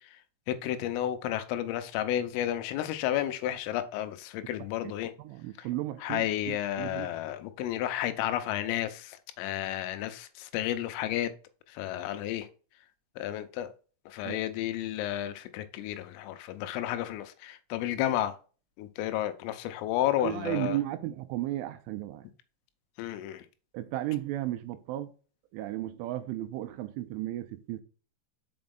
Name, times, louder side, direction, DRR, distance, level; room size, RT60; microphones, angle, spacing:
voice 1, 0.5-5.1 5.6-5.7 6.0-11.3 11.7-12.5 13.2-13.7 14.1-18.4 18.8-20.8 23.0-23.4, left 12 dB, 85° left, 3.4 m, -32 dB
voice 2, 5.2-7.1 14.3-14.4 20.2-22.3 23.7-25.1 25.5-27.8, right 15 dB, 85° right, 3.0 m, -34 dB
6.9 x 5.2 x 3.7 m
omnidirectional pair, 5.8 m